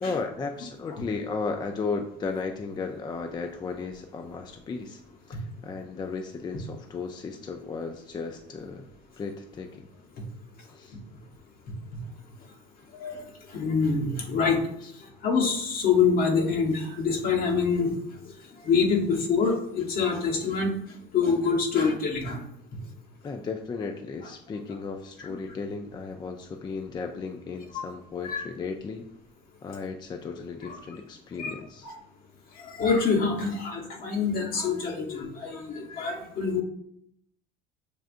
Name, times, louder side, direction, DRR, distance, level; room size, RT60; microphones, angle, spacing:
voice 1, 0.0-5.0 5.3-8.9 9.2-9.9 10.6-11.0 14.8-14.9 23.2-29.1 29.6-31.9, left 4 dB, 25° left, 5 dB, 0.4 m, -35 dB
voice 2, 13.5-14.6 15.2-17.9 18.6-20.7 21.1-22.4 27.7-27.8 28.2-28.4 31.4-31.5 32.6-36.6, left 5 dB, 60° left, 1 dB, 1.1 m, -25 dB
6.6 x 2.4 x 2.5 m, 0.72 s
supercardioid pair, 95°, 18 cm